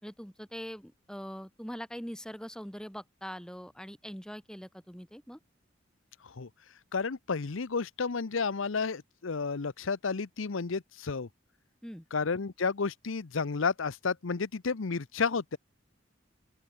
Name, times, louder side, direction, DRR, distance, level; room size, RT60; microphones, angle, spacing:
voice 1, 0.0-5.4 11.8-12.1, equal, 5° left, 4.4 m, -42 dB
voice 2, 6.9-11.3 12.1-15.6, left 5 dB, 80° left, 0.7 m, -31 dB
open air
head